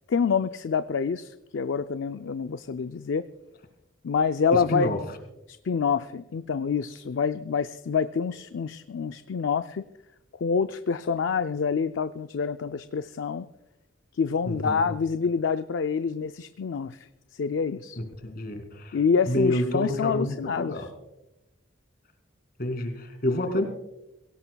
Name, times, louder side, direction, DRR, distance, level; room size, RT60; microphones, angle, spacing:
voice 1, 0.1-3.2 4.0-4.9 5.5-9.8 10.4-13.5 14.1-17.0 17.4-18.0 18.9-20.8, left 6 dB, 65° left, 10 dB, 0.4 m, -27 dB
voice 2, 4.5-5.0 14.5-14.9 18.0-19.0 19.3-20.9 22.6-23.6, left 1 dB, 50° left, 6 dB, 2.3 m, -28 dB
23.0 x 17.5 x 2.3 m, 0.92 s
head